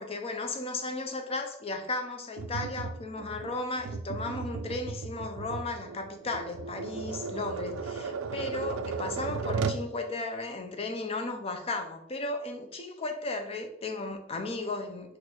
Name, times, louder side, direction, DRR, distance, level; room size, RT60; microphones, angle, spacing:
voice 1, 0.0-15.2, left 2 dB, 25° left, 5 dB, 0.5 m, -35 dB
Tap, 2.4-9.9, right 5 dB, 70° right, 0.4 m, -35 dB
4.3 x 2.5 x 4.3 m, 0.78 s
head